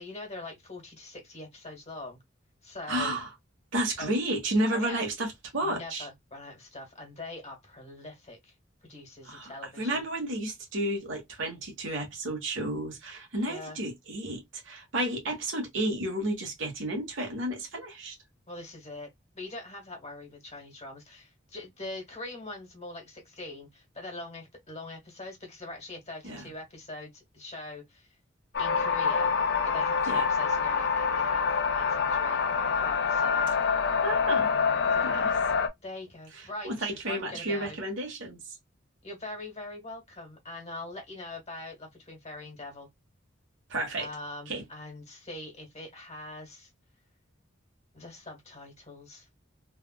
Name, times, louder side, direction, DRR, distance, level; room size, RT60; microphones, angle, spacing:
voice 1, 0.0-2.2 2.6-3.2 4.0-4.1 4.7-5.0 5.6-8.5 8.8-10.0 13.5-13.8 18.5-19.1 19.3-28.2 28.6-32.4 32.8-33.6 34.9-35.3 35.8-37.8 39.0-42.9 44.0-46.7 47.9-49.3, left 2 dB, 35° left, 1.5 m, -43 dB
voice 2, 2.9-3.3 3.7-6.1 9.2-9.5 9.8-18.1 26.2-26.5 30.1-30.2 34.0-34.5 35.0-35.3 36.6-38.4 43.7-44.1 44.5-44.6, right 1 dB, 70° right, 1.3 m, -31 dB
sound 1, 28.5-35.7, left 5 dB, 55° left, 0.6 m, -26 dB
3.4 x 2.4 x 2.3 m
head